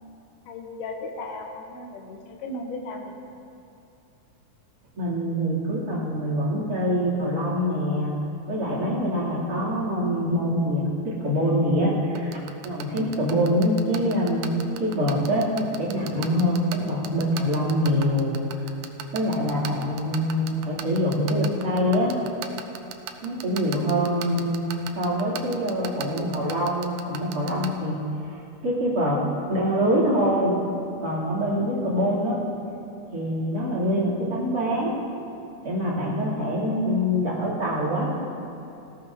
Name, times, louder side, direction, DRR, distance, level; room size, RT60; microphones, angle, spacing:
voice 1, 0.5-3.2 31.6-31.9, left 2 dB, 80° left, 2 dB, 2.6 m, -36 dB
voice 2, 5.0-8.2 8.5-12.4 12.6-14.5 14.8-18.3 19.1-22.1 23.2-24.6 24.9-29.2 29.5-30.5 31.0-32.4 33.1-34.9 35.6-38.1, equal, 30° right, -8 dB, 3.3 m, -24 dB
sound 1, 12.2-27.7, right 11 dB, 75° right, 1.8 m, -35 dB
19.0 x 14.5 x 2.8 m, 2.7 s
omnidirectional pair, 3.6 m